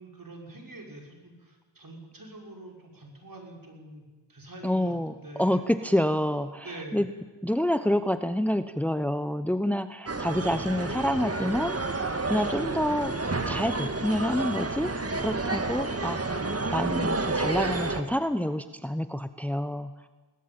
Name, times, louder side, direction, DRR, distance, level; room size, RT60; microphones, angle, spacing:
voice 1, 0.0-5.7 6.6-7.0, right 2 dB, 50° right, 1 dB, 6.1 m, -45 dB
voice 2, 4.6-5.1 5.4-6.7 6.9-7.1 7.4-13.2 13.5-16.2 16.7-19.9, left 1 dB, 5° left, 11 dB, 1.0 m, -28 dB
sound 1, 10.1-18.0, right 3 dB, 35° right, 2.0 m, -30 dB
21.0 x 19.5 x 8.9 m, 1.3 s
cardioid pair, 50°, 43 cm